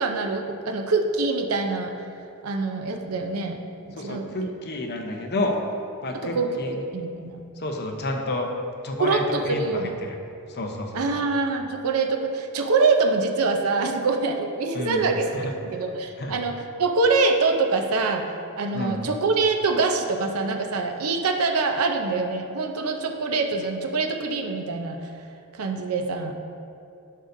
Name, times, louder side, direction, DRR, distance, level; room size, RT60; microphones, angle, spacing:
voice 1, 0.0-1.9 2.4-3.6 3.9-4.3 6.1-7.4 9.0-10.0 10.9-18.3 18.6-25.0 25.6-26.3, right 3 dB, 80° right, 4 dB, 0.6 m, -24 dB
voice 2, 4.0-5.6 6.0-6.7 7.6-8.5 8.8-9.8 10.6-11.2 14.7-15.0 16.2-16.3 18.7-19.0, left 1 dB, 50° left, 3 dB, 0.8 m, -29 dB
11.0 x 6.6 x 2.7 m, 2.6 s
head